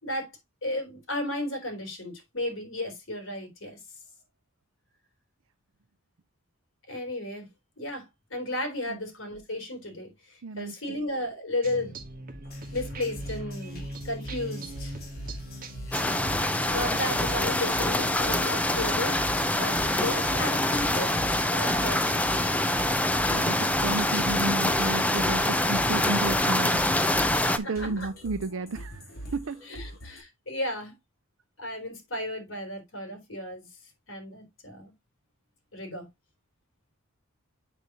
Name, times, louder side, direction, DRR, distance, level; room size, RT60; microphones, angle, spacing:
voice 1, 0.6-3.8 6.9-7.5 7.8-11.9 12.7-14.9 16.7-21.1 21.5-22.4 27.6-28.1 29.6-30.9 31.6-33.7 34.1-34.9 35.7-36.1, left 1 dB, 65° left, 3.6 m, -34 dB
voice 2, 10.4-10.7 20.0-20.1 23.3-26.9 27.6-29.6, right 3 dB, 70° right, 0.6 m, -32 dB
sound 1, 11.6-18.1, right 1 dB, 45° right, 1.4 m, -41 dB
sound 2, 12.4-30.2, right 1 dB, 45° left, 3.6 m, -42 dB
sound 3, 15.9-27.6, left 1 dB, 5° left, 0.6 m, -25 dB
8.0 x 5.9 x 2.9 m
head